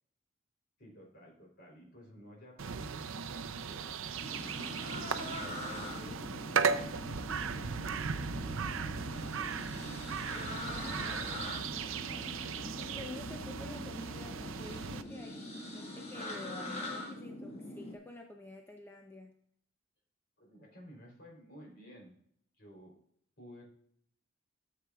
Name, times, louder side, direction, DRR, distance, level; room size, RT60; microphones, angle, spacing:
voice 1, 0.8-5.3 5.7-10.0 10.3-13.0 20.4-22.1 22.6-22.9 23.4-23.6, equal, 55° left, 0 dB, 3.4 m, -55 dB
sound 1, 2.6-15.0, right 6 dB, 75° right, 0.5 m, -37 dB
sound 2, 4.2-18.0, left 1 dB, 30° left, 1.7 m, -43 dB
voice 2, 10.7-11.1 12.8-19.3, left 1 dB, 10° left, 2 dB, 0.6 m, -49 dB
13.5 x 7.6 x 2.3 m, 0.67 s
head